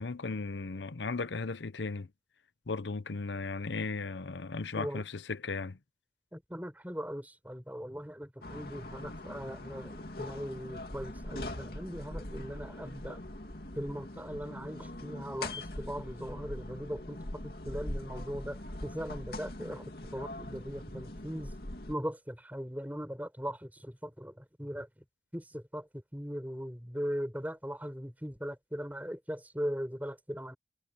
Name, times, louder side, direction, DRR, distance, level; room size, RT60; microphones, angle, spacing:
voice 1, 0.0-2.1 2.7-5.8, left 3 dB, 90° left, 0.8 m, -36 dB
voice 2, 6.3-13.2 13.7-21.5 21.9-25.0 25.3-30.6, equal, 10° right, 4.9 m, -39 dB
sound 1, 8.4-21.9, left 1 dB, 60° left, 2.5 m, -42 dB
head